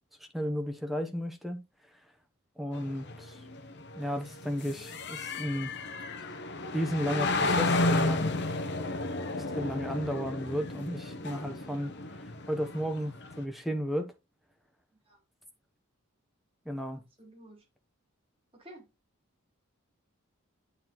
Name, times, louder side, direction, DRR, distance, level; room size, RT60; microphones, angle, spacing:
voice 1, 0.2-1.6 2.6-3.4 4.0-5.7 6.7-8.2 9.4-11.9 12.2-14.1 16.7-17.0, equal, ahead, 0.9 m, -34 dB
sound 1, 2.7-13.4, left 2 dB, 50° left, 0.8 m, -32 dB
voice 2, 16.9-17.7 18.5-18.9, right 1 dB, 25° right, 1.9 m, -52 dB
9.0 x 3.9 x 3.0 m
head